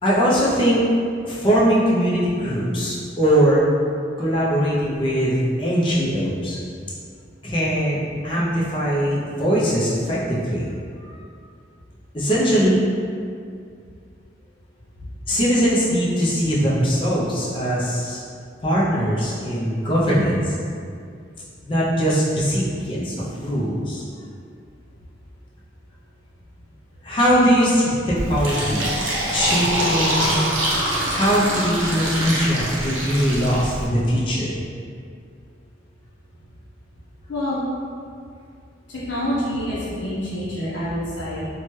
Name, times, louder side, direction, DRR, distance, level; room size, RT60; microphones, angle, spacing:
voice 1, 0.0-0.8 1.2-3.6 4.2-6.6 7.4-10.7 11.0-11.2 12.1-12.9 15.3-18.2 18.6-20.5 21.6-24.0 27.0-28.9 29.3-30.3 31.0-34.5, equal, 25° left, -7 dB, 0.5 m, -21 dB
Fill (with liquid), 28.2-33.9, right 1 dB, 85° right, 0.7 m, -24 dB
voice 2, 37.3-37.6 38.9-41.5, equal, 75° left, -10 dB, 0.6 m, -27 dB
2.8 x 2.2 x 3.1 m, 2.3 s
head